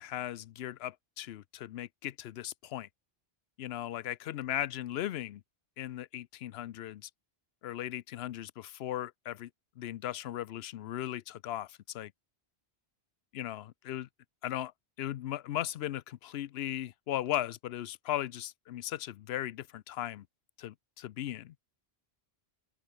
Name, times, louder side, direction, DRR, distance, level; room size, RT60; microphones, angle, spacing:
voice 1, 0.0-2.9 3.6-5.4 5.8-7.1 7.6-9.5 9.8-12.1 13.3-14.1 14.4-14.7 15.0-20.3 20.6-21.5, left 12 dB, 75° left, 0.8 m, -37 dB
open air
omnidirectional pair, 1.1 m